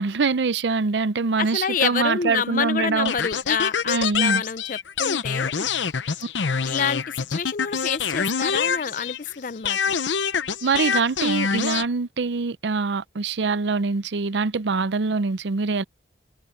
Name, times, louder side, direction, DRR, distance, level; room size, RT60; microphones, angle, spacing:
voice 1, 0.0-3.1 3.9-4.4 10.6-15.8, right 4 dB, 75° right, 0.6 m, -24 dB
voice 2, 1.4-5.7 6.6-9.8, left 6 dB, 45° left, 0.5 m, -27 dB
sound 1, 3.1-9.3 9.7-11.9, left 6 dB, 85° left, 0.8 m, -25 dB
head